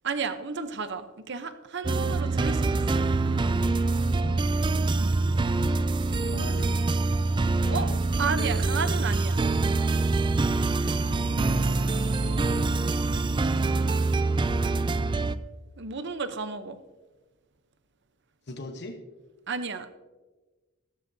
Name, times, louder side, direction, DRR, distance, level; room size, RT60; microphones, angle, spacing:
voice 1, 0.0-3.1 5.0-5.1 7.7-7.9 8.2-9.4 15.8-16.8 19.5-19.9, right 5 dB, 60° right, 10 dB, 0.8 m, -32 dB
sound 1, 1.8-15.4, right 3 dB, 25° right, 0.4 m, -25 dB
voice 2, 4.0-4.4 5.2-5.8 6.2-6.8 7.5-8.0 10.8-13.1 13.5-14.8 18.5-19.0, left 2 dB, 55° left, 5 dB, 1.0 m, -41 dB
14.0 x 13.5 x 2.7 m, 1.2 s
head